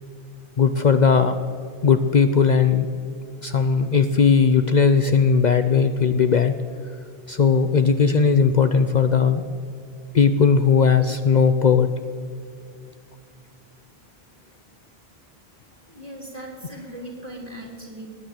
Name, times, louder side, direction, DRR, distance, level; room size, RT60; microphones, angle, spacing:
voice 1, 0.6-1.3 1.8-2.9 3.4-6.5 7.3-9.4 10.1-11.9, left 6 dB, 50° left, 9 dB, 0.7 m, -18 dB
voice 2, 15.9-18.1, right 1 dB, 40° right, 0 dB, 3.3 m, -38 dB
20.0 x 8.8 x 7.5 m, 2.3 s
omnidirectional pair, 1.0 m